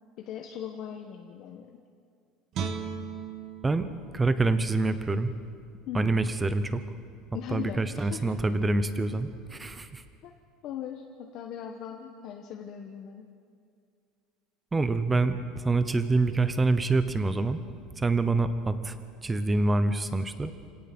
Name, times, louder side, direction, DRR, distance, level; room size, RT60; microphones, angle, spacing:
voice 1, 0.2-1.7 5.9-6.2 7.3-8.2 10.2-10.3 10.6-13.2, left 9 dB, 40° left, 2 dB, 1.2 m, -39 dB
Guitar, 2.5-5.7 6.1-6.3, right 6 dB, 35° right, 1.4 m, -38 dB
voice 2, 4.1-5.3 5.9-6.8 7.5-10.0 14.7-17.6 18.0-19.0 19.2-20.5, right 3 dB, 10° right, 11 dB, 0.9 m, -26 dB
27.0 x 17.5 x 6.1 m, 2.2 s
cardioid pair, 170°, 0 cm